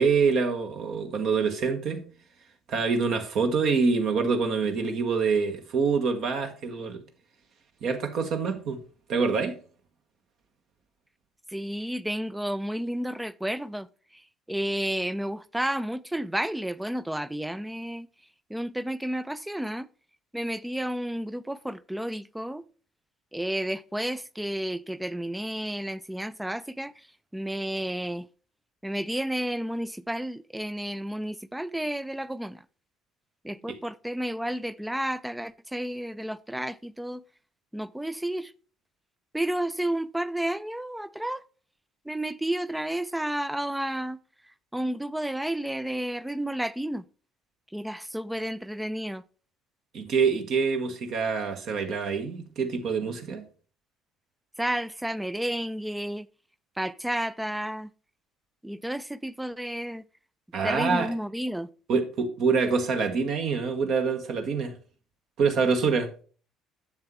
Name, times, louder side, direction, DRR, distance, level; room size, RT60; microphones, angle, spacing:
voice 1, 0.0-2.1 2.7-7.0 7.8-8.8 9.1-9.6 33.7-33.8 49.9-53.4 60.5-61.1 61.9-64.7 65.4-66.1, right 5 dB, 50° right, 1.3 m, -26 dB
voice 2, 11.5-13.9 14.1-14.2 14.5-18.1 18.5-19.9 20.3-22.6 23.3-26.9 27.3-28.3 28.8-32.6 33.4-37.2 37.7-38.5 39.3-41.4 42.1-44.2 44.7-47.0 47.7-49.2 54.6-56.3 56.8-57.9 58.6-60.0 60.6-61.7, right 1 dB, 5° right, 0.4 m, -31 dB
7.7 x 7.2 x 3.2 m
figure-of-eight pair, 55°, 0 cm